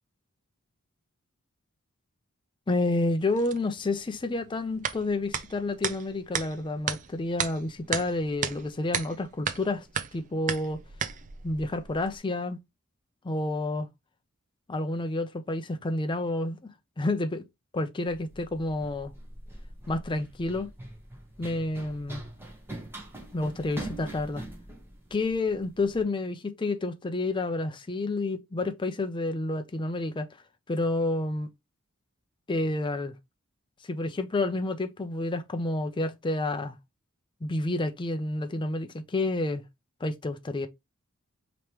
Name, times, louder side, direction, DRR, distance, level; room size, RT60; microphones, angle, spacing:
voice 1, 2.7-9.9 10.1-10.8 11.4-12.6 13.2-13.9 14.7-16.7 17.0-17.4 17.7-19.1 19.9-20.7 21.4-22.2 23.3-24.4 25.1-30.3 30.7-31.5 32.5-33.2 33.8-36.8 37.4-39.6 40.0-40.7, left 2 dB, 20° left, 0.5 m, -29 dB
sound 1, 3.2-12.2, right 7 dB, 35° right, 0.5 m, -35 dB
Run, 18.1-26.0, right 1 dB, 10° right, 1.2 m, -43 dB
5.0 x 3.0 x 3.0 m
head